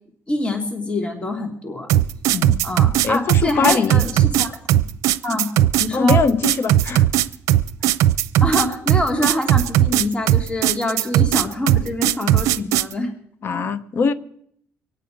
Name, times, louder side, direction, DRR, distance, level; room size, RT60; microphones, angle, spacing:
voice 1, 0.3-1.9 2.6-4.8 5.2-5.5 5.8-6.2 8.4-13.1 13.5-13.7, left 1 dB, 20° left, 3 dB, 2.1 m, -25 dB
sound 1, 1.9-12.9, right 13 dB, 90° right, 0.6 m, -17 dB
voice 2, 3.0-4.0 5.9-7.0 13.4-14.1, left 5 dB, 45° left, 14 dB, 1.0 m, -21 dB
24.0 x 8.9 x 4.9 m, 0.69 s
cardioid pair, 110°, 5 cm